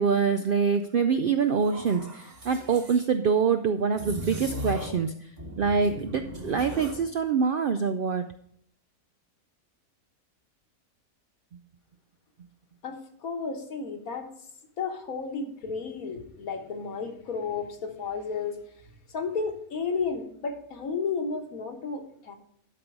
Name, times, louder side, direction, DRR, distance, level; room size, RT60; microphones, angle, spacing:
voice 1, 0.0-5.3 5.6-8.3, right 5 dB, 80° right, 8 dB, 0.5 m, -25 dB
sound 1, 1.6-3.1 3.9-5.1 5.4-7.1, equal, 30° right, 1.4 m, -38 dB
voice 2, 12.8-14.3 14.8-18.6 19.1-22.4, left 5 dB, 75° left, 4 dB, 1.7 m, -32 dB
12.0 x 5.3 x 4.6 m, 0.67 s
omnidirectional pair, 1.5 m